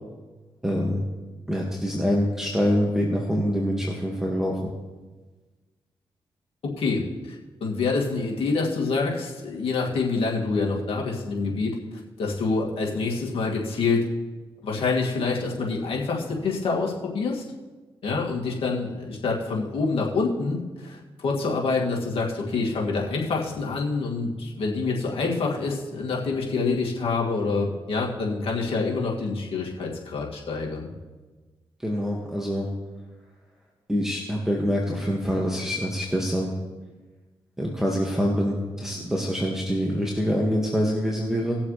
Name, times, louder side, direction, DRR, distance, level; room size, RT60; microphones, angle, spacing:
voice 1, 0.6-1.0 1.5-4.6 31.8-32.7 33.9-36.5 37.6-41.6, equal, 5° right, -2 dB, 2.0 m, -25 dB
voice 2, 7.3-11.8 12.2-14.0 14.6-17.4 18.0-30.9, left 4 dB, 75° left, -2 dB, 2.4 m, -26 dB
19.5 x 7.1 x 3.3 m, 1.3 s
cardioid pair, 55°, 10 cm